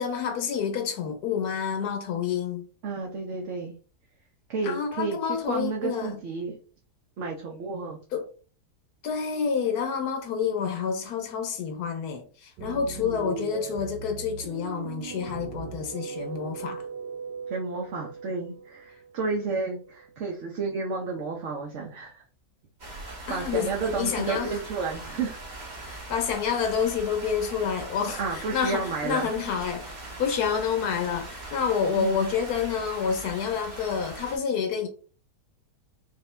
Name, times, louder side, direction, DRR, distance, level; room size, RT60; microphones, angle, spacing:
voice 1, 0.0-2.7 4.6-6.2 8.1-8.3 9.0-16.9 23.3-24.6 25.8-29.9 30.2-34.9, left 7 dB, 70° left, 1.2 m, -28 dB
voice 2, 2.8-3.8 4.5-6.6 7.2-8.0 13.0-13.3 17.5-22.2 22.9-25.4 28.1-29.3 32.0-32.2, right 4 dB, 55° right, 0.9 m, -32 dB
sound 1, 12.6-20.1, right 7 dB, 90° right, 1.2 m, -39 dB
sound 2, 22.8-34.4, right 2 dB, 30° right, 1.4 m, -41 dB
5.1 x 2.6 x 3.2 m
omnidirectional pair, 1.8 m